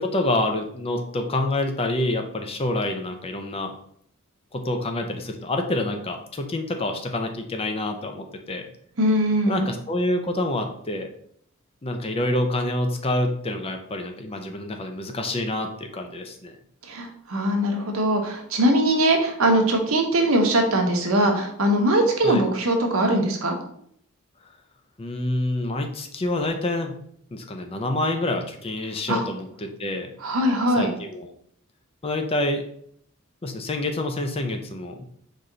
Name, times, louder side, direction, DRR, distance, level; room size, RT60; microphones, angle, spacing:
voice 1, 0.0-3.8 4.5-8.6 9.5-11.1 11.8-16.5 22.2-22.4 25.0-27.0 27.3-30.1 30.8-31.3 32.0-32.6 33.4-35.0, left 1 dB, 25° left, 5 dB, 0.5 m, -27 dB
voice 2, 9.0-9.7 16.9-23.6 29.1-29.2 30.2-30.9, right 1 dB, 80° right, 2 dB, 1.0 m, -21 dB
4.2 x 3.2 x 3.8 m, 0.66 s
head